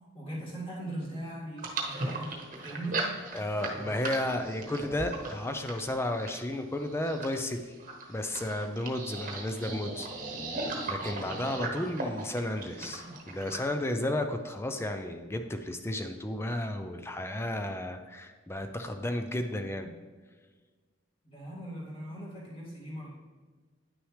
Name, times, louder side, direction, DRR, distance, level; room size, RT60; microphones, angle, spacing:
voice 1, 0.1-3.2 19.8-19.9 21.2-23.1, right 1 dB, 30° left, -5 dB, 2.0 m, -40 dB
sound 1, 1.6-13.7, right 2 dB, 40° right, 1.1 m, -37 dB
voice 2, 3.3-7.7 8.1-10.4 10.9-19.9, left 1 dB, 15° left, 6 dB, 0.4 m, -33 dB
9.7 x 6.2 x 3.2 m, 1.4 s
head